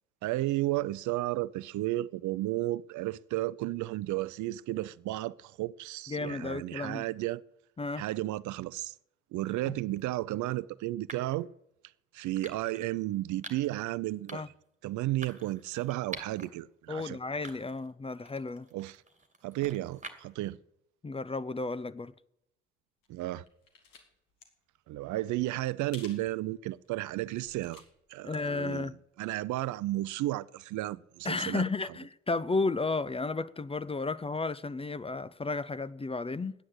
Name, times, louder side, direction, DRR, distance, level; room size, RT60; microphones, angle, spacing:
voice 1, 0.2-7.4 8.0-8.9 9.3-11.5 12.1-14.4 14.8-17.2 18.7-19.0 19.4-20.6 23.1-23.4 24.9-27.8 28.1-28.9 29.2-31.7, right 16 dB, 55° right, 0.5 m, -33 dB
voice 2, 6.1-7.0 7.8-8.0 9.7-9.8 14.3-14.5 16.9-18.7 21.0-22.1 28.2-28.9 31.2-36.5, left 3 dB, 15° left, 0.6 m, -33 dB
sound 1, 9.8-10.0 11.1-11.4 12.4-12.9 13.4-13.8 14.3-14.6 15.2-16.5 16.9-17.0 17.4-17.9 18.3-20.5, right 3 dB, 20° right, 2.4 m, -46 dB
sound 2, 23.0-24.0 24.3-24.5 25.9-26.3 26.8-26.9 27.3-28.4 28.7-28.8, left 4 dB, 65° left, 2.5 m, -52 dB
12.0 x 9.7 x 8.1 m
figure-of-eight pair, 45°, 35 cm